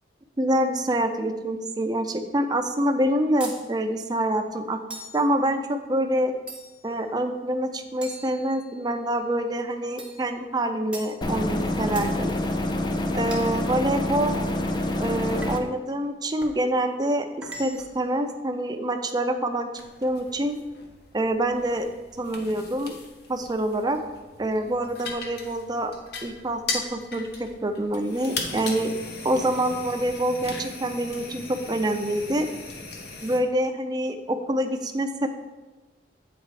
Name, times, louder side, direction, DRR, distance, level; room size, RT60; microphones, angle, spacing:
voice 1, 0.4-4.8 5.1-6.3 6.8-12.3 13.1-14.4 15.0-17.3 17.6-19.7 20.0-20.6 21.1-21.9 22.2-22.9 23.3-24.0 24.4-25.9 26.2-28.9 29.2-32.5 33.2-35.3, right 1 dB, 25° right, 6 dB, 0.5 m, -26 dB
sound 1, 3.4-3.7 4.9-5.3 6.5-6.9 8.0-8.9 10.0-10.3 10.9-11.2 12.0-12.2 13.3-13.6 14.3-14.6 15.4-15.8 16.4-16.6 17.4-18.0, right 2 dB, 5° right, 0.8 m, -40 dB
sound 2, 11.2-15.6, left 1 dB, 25° left, 0.5 m, -27 dB
sound 3, 19.7-33.4, left 3 dB, 60° left, 0.9 m, -38 dB
7.9 x 4.2 x 4.8 m, 1.2 s
head